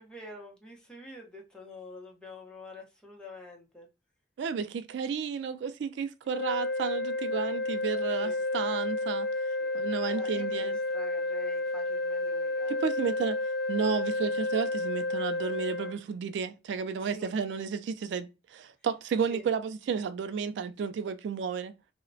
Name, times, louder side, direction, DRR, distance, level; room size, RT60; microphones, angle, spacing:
voice 1, 0.0-3.9 8.2-8.4 9.6-12.9 17.0-17.3 19.3-19.4, left 2 dB, 5° left, 0.7 m, -47 dB
voice 2, 4.4-9.3 9.7-10.8 12.7-13.4 13.7-21.7, right 6 dB, 75° right, 0.3 m, -32 dB
sound 1, 6.3-16.0, left 2 dB, 55° left, 0.4 m, -31 dB
2.8 x 2.1 x 2.6 m
head